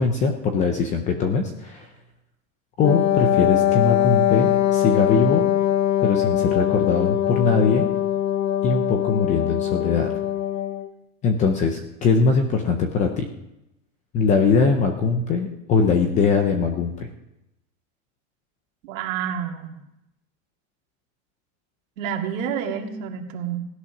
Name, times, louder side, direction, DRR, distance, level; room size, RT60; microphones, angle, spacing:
voice 1, 0.0-1.9 2.8-5.5 6.0-7.9 8.6-10.1 11.2-13.3 14.1-17.1, left 5 dB, 20° left, 5 dB, 0.5 m, -21 dB
Wind instrument woodwind instrument, 2.8-10.9, left 11 dB, 70° left, 1.1 m, -22 dB
voice 2, 18.8-19.8 22.0-23.6, right 8 dB, 70° right, 3 dB, 2.2 m, -29 dB
16.5 x 11.0 x 5.9 m, 0.91 s
supercardioid pair, 180°, 41 cm